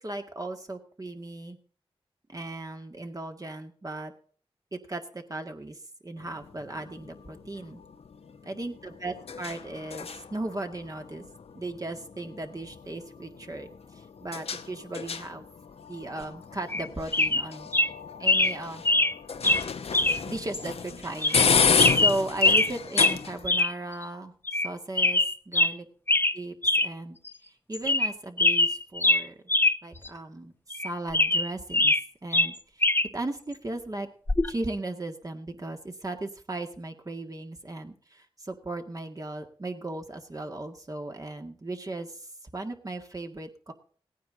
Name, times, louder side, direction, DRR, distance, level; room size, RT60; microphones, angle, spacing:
voice 1, 0.0-1.6 2.3-4.1 4.7-7.8 8.4-11.3 11.5-15.4 15.9-17.9 18.2-18.8 20.3-24.3 24.6-25.8 26.3-26.5 26.8-29.4 29.8-31.9 32.2-34.1 34.5-43.7, right 2 dB, 35° right, 4 dB, 1.9 m, -37 dB
sound 1, 6.2-23.6, left 6 dB, 85° left, 0.8 m, -32 dB
sound 2, 16.7-16.9 17.1-17.4 17.7-17.9 18.3-18.5 18.9-19.1 19.4-19.6 19.9-20.2 20.5-20.6 21.2-21.5 21.8-22.7 23.0-23.2 23.5-23.7 24.0-24.1 24.5-24.7 25.0-25.7 26.1-26.4 26.6-26.9 27.3-27.4 27.7-28.1 28.4-29.8 30.1-30.2 30.7-32.0 32.3-33.1 34.3-34.5, left 2 dB, 20° left, 0.8 m, -22 dB
17.0 x 9.4 x 3.9 m, 0.43 s
cardioid pair, 60°, 10 cm